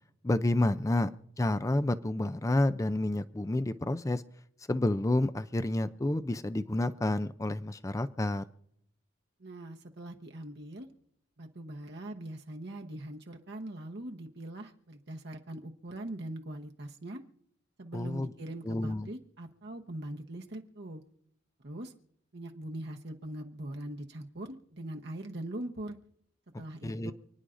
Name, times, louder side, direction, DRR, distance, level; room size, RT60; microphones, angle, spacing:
voice 1, 0.2-1.1 1.4-4.2 4.7-8.5 17.9-18.3 18.7-19.1 26.8-27.1, left 1 dB, 15° left, 13 dB, 0.4 m, -29 dB
voice 2, 9.4-10.9 11.4-17.2 17.8-21.0 21.6-21.9 22.3-26.0 26.6-27.1, right 1 dB, 55° right, 3 dB, 1.0 m, -42 dB
29.0 x 9.8 x 2.6 m, 0.72 s
head